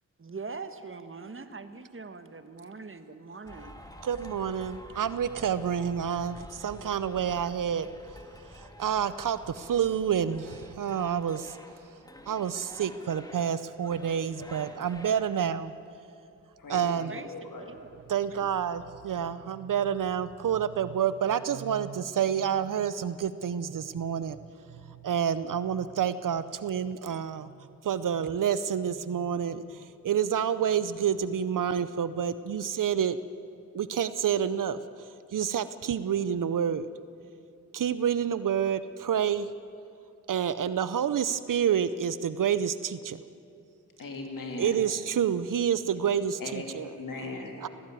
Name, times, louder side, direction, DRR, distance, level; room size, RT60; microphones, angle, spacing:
voice 1, 0.2-3.8 17.1-17.3 17.6-18.0, right 4 dB, 40° right, 10 dB, 1.4 m, -42 dB
sound 1, 3.5-15.5, equal, 10° left, 2.2 m, -49 dB
voice 2, 4.0-7.9 8.5-11.6 12.3-15.7 16.7-17.1 18.1-24.4 24.9-27.5 27.8-33.2 33.7-34.8 35.3-36.9 37.7-39.5 40.3-43.2 44.6-46.9 47.6-47.7, right 8 dB, 70° right, 14 dB, 0.7 m, -28 dB
voice 3, 16.6-17.7 44.0-44.8 46.4-47.6, left 2 dB, 75° left, 2 dB, 3.0 m, -39 dB
18.5 x 15.5 x 9.2 m, 2.6 s
cardioid pair, 65°, 33 cm